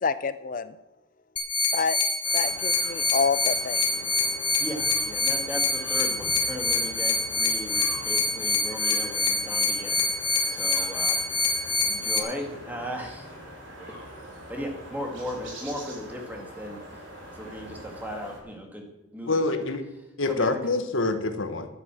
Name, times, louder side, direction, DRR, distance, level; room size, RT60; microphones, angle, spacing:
voice 1, 0.0-0.7 1.7-2.0 2.3-3.8, left 5 dB, 40° left, 14 dB, 0.4 m, -27 dB
sound 1, 1.4-12.2, left 3 dB, 20° left, 1.2 m, -26 dB
sound 2, 2.2-18.4, equal, 65° right, 4.2 m, -43 dB
voice 2, 4.6-10.0 10.5-11.2 11.5-13.3 13.8-14.0 14.5-16.8 17.3-18.9 19.1-19.7 20.2-20.6, equal, 10° right, 2 dB, 2.1 m, -37 dB
voice 3, 19.3-19.8 20.2-21.7, left 3 dB, 70° left, 8 dB, 1.3 m, -26 dB
11.0 x 9.6 x 7.5 m, 0.98 s
head